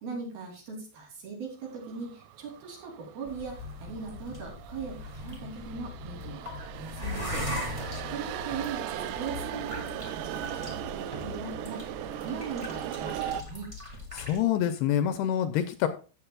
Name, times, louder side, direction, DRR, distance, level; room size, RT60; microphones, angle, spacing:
voice 1, 0.0-7.4 7.7-13.7, right 5 dB, 60° right, -1 dB, 4.8 m, -40 dB
sound 1, 1.8-13.4, right 12 dB, 85° right, 2.8 m, -38 dB
sound 2, 3.3-14.4, left 2 dB, 15° right, 1.0 m, -40 dB
voice 2, 14.1-15.9, left 10 dB, 80° left, 9 dB, 2.5 m, -27 dB
14.5 x 8.4 x 2.3 m, 0.34 s
omnidirectional pair, 5.1 m